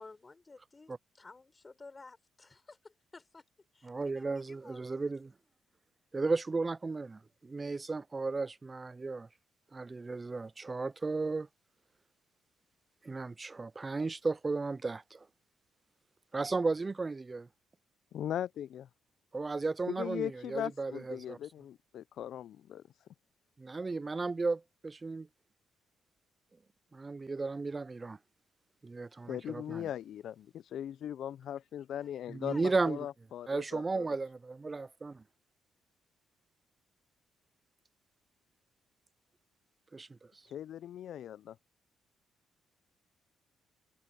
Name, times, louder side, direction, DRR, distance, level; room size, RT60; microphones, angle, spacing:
voice 1, 0.0-3.4 3.7-5.1 32.0-32.1 32.4-32.9, left 3 dB, 25° left, 4.3 m, -54 dB
voice 2, 3.8-5.3 6.1-9.3 9.7-11.5 13.0-15.3 16.3-17.5 19.3-21.4 23.6-25.3 26.9-28.2 28.8-29.9 32.3-33.0 33.5-35.2 39.9-40.2, right 3 dB, 25° right, 0.3 m, -34 dB
voice 3, 18.1-18.9 19.9-22.8 29.3-34.1 40.5-41.6, left 10 dB, 70° left, 0.4 m, -39 dB
cardioid pair, 90°, 0 cm